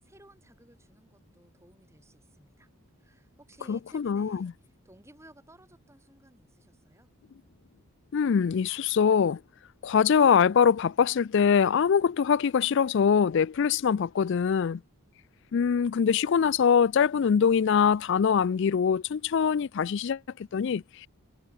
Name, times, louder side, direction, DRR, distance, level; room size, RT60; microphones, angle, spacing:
voice 1, 0.0-2.7 3.0-7.1, right 1 dB, 10° right, 6.3 m, -57 dB
voice 2, 3.7-4.5 8.1-9.4 9.8-14.8 15.5-21.1, left 7 dB, 55° left, 0.3 m, -23 dB
head